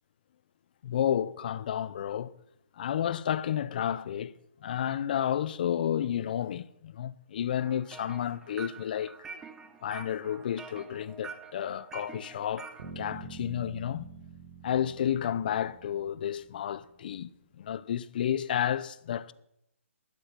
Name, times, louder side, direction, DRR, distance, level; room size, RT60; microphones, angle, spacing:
voice 1, 0.8-2.3 2.8-4.3 4.6-9.1 9.8-12.7 13.0-14.1 14.6-17.3 17.6-19.3, left 10 dB, 40° left, 0.6 m, -31 dB
sound 1, 7.6-12.9, right 5 dB, 10° right, 0.7 m, -46 dB
sound 2, 12.8-16.8, right 5 dB, 45° right, 4.1 m, -47 dB
15.5 x 12.0 x 5.9 m
hypercardioid pair, 165°, 7 cm